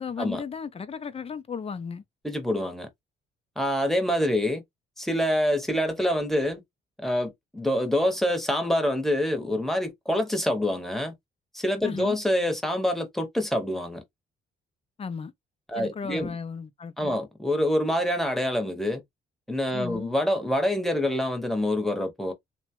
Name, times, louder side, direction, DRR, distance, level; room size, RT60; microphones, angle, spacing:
voice 1, 0.0-2.0 11.8-12.2 15.0-15.3 15.8-17.2 19.7-20.1, left 6 dB, 30° left, 0.5 m, -35 dB
voice 2, 2.2-2.9 3.6-4.6 5.0-6.6 7.0-11.1 11.5-14.0 15.7-16.4 17.0-19.0 19.5-22.3, left 1 dB, ahead, 1.0 m, -26 dB
2.9 x 2.2 x 2.9 m
cardioid pair, 90°, 20 cm